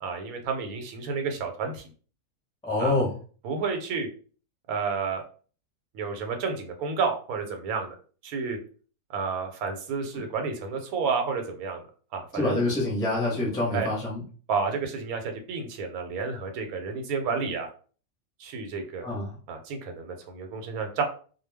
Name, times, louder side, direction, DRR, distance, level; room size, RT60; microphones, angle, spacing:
voice 1, 0.0-1.9 2.8-3.0 3.4-4.1 4.7-5.2 5.9-7.9 8.2-8.6 9.1-11.8 12.1-12.6 13.7-13.9 14.5-17.7 18.4-19.0 19.5-21.0, right 5 dB, 85° right, 4 dB, 1.1 m, -30 dB
voice 2, 2.6-3.1 12.3-14.2 19.0-19.3, left 2 dB, 5° left, -4 dB, 0.7 m, -26 dB
2.3 x 2.2 x 3.3 m, 0.40 s
omnidirectional pair, 1.5 m